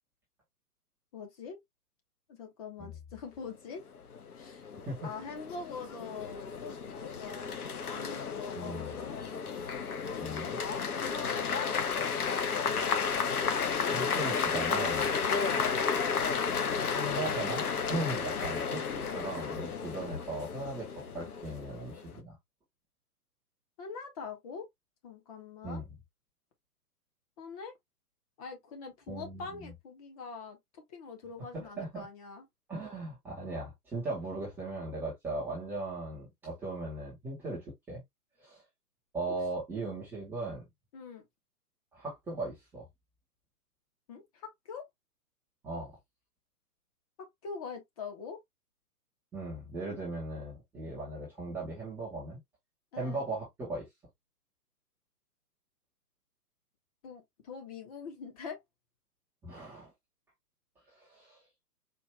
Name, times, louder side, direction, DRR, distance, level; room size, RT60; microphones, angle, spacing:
voice 1, 1.1-1.6 2.3-3.8 4.3-4.7 5.0-9.2 9.9-12.4 15.4-15.8 23.8-24.7 25.0-25.8 27.4-27.7 28.4-32.4 40.9-41.2 44.1-44.9 47.2-48.4 52.9-53.2 57.0-58.6, left 5 dB, 25° left, 0.8 m, -44 dB
sound 1, 3.9-22.2, left 6 dB, 70° left, 1.0 m, -33 dB
voice 2, 8.5-9.0 10.2-10.6 13.9-15.1 16.9-18.9 19.1-22.3 25.6-25.8 29.1-29.7 31.5-32.0 32.7-38.0 38.4-38.6 39.1-40.7 41.9-42.9 45.6-45.9 49.3-52.4 52.9-53.9 59.4-59.9 60.9-61.4, right 2 dB, 5° right, 0.6 m, -38 dB
4.4 x 2.5 x 3.0 m
figure-of-eight pair, 135°, 46 cm